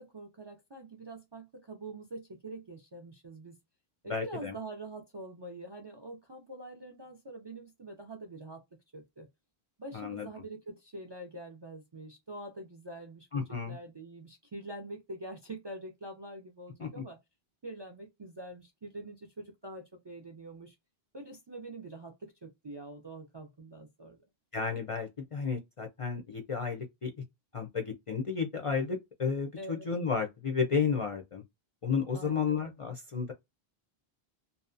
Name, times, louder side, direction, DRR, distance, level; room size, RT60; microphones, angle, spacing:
voice 1, 0.0-3.6 4.0-8.6 8.9-9.3 9.8-17.2 17.6-20.8 21.1-24.2 29.6-29.8 32.1-32.7, right 2 dB, 40° right, 0.3 m, -45 dB
voice 2, 4.1-4.5 9.9-10.3 13.3-13.8 16.8-17.0 24.5-27.1 27.5-31.4 31.8-33.3, left 5 dB, 45° left, 0.4 m, -32 dB
2.7 x 2.1 x 2.5 m
omnidirectional pair, 1.0 m